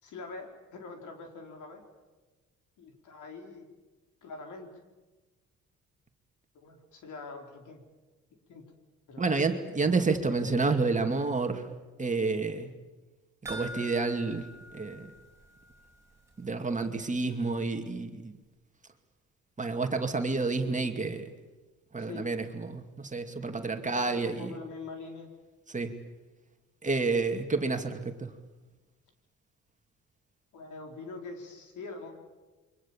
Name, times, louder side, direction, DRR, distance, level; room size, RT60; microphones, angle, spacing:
voice 1, 0.0-1.8 2.8-3.7 4.2-4.7 6.5-7.8 8.5-8.7 9.1-9.5 22.1-22.3 23.8-25.3 30.5-32.1, left 3 dB, 75° left, 4 dB, 4.8 m, -44 dB
voice 2, 9.2-11.6 12.0-12.7 13.5-14.5 14.7-15.1 16.4-18.3 19.6-21.3 21.9-24.5 25.7-25.9 26.8-28.3, right 3 dB, 25° right, 6 dB, 2.5 m, -29 dB
sound 1, 13.5-16.0 16.3-16.4 16.8-16.9, left 1 dB, 10° right, 5.2 m, -45 dB
28.5 x 24.0 x 7.4 m, 1.2 s
cardioid pair, 90°, 30 cm